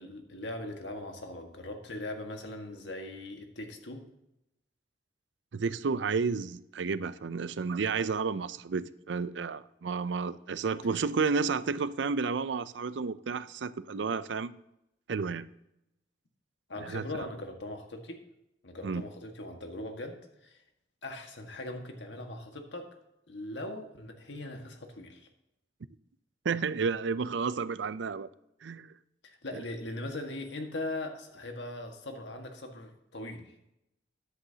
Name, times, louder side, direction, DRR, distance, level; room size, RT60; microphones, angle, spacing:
voice 1, 0.0-4.1 10.9-11.0 16.7-18.2 18.6-20.6 21.0-22.9 23.3-25.3 29.2-33.7, left 1 dB, 75° left, 1.7 m, -40 dB
voice 2, 5.5-14.5 15.1-15.5 16.8-17.0 18.8-19.0 26.4-28.3 28.6-28.9 29.5-29.6, right 5 dB, 80° right, 0.5 m, -31 dB
13.5 x 10.5 x 2.9 m
head